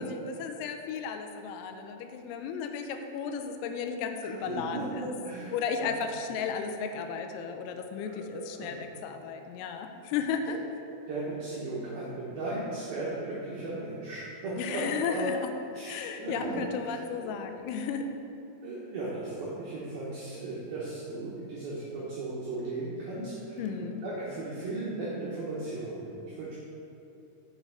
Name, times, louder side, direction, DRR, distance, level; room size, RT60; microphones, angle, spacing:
voice 1, 0.0-5.1 5.5-10.6 14.6-15.5 15.8-18.1 23.6-24.0, left 6 dB, 85° left, 6 dB, 3.3 m, -34 dB
voice 2, 4.5-5.5 5.8-5.9 8.1-8.7 10.9-15.3 15.7-17.0 18.6-26.5, right 2 dB, 80° right, -7 dB, 2.1 m, -36 dB
7.6 x 6.6 x 4.7 m, 2.8 s
omnidirectional pair, 5.9 m